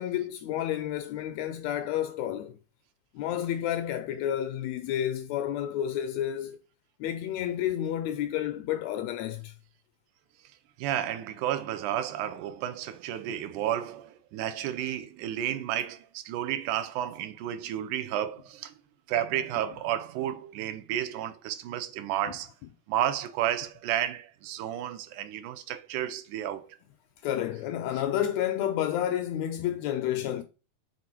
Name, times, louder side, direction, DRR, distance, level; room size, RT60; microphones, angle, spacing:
voice 1, 0.0-2.6 3.1-6.6 7.0-9.5 27.2-30.4, left 11 dB, 80° left, 1.6 m, -30 dB
voice 2, 10.8-18.8 19.1-22.5 22.9-26.8, right 11 dB, 85° right, 2.2 m, -32 dB
6.5 x 4.0 x 4.3 m
omnidirectional pair, 3.5 m